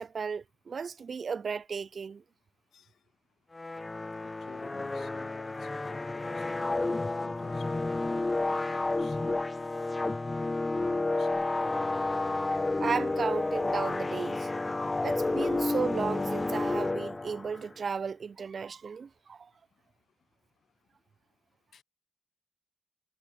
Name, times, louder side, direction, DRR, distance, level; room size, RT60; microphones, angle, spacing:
voice 1, 0.0-2.2 12.4-14.5 15.0-19.5, right 5 dB, 50° right, 1.1 m, -35 dB
sound 1, 3.5-17.6, left 2 dB, 25° left, 1.2 m, -31 dB
voice 2, 4.2-6.8 7.1-8.1 8.7-9.4 10.8-11.5 21.7-21.8, left 8 dB, 70° left, 7.2 m, -52 dB
cardioid pair, 75°, 0 cm